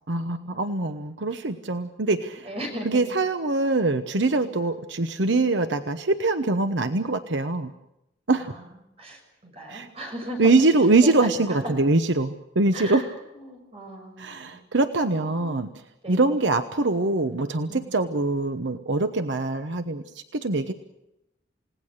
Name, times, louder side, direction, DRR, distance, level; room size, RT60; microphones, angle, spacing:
voice 1, 0.1-2.5 2.8-7.7 8.3-8.5 9.7-9.9 10.4-13.0 14.2-15.8 16.1-20.7, right 3 dB, 85° right, 8 dB, 1.0 m, -23 dB
voice 2, 2.4-3.0 4.4-4.5 8.3-8.6 9.0-10.5 11.0-11.7 12.7-13.1 13.4-14.6 14.9-15.5 16.0-16.3 17.7-18.0, equal, 35° right, 2 dB, 6.5 m, -37 dB
29.0 x 18.0 x 6.5 m, 0.86 s
head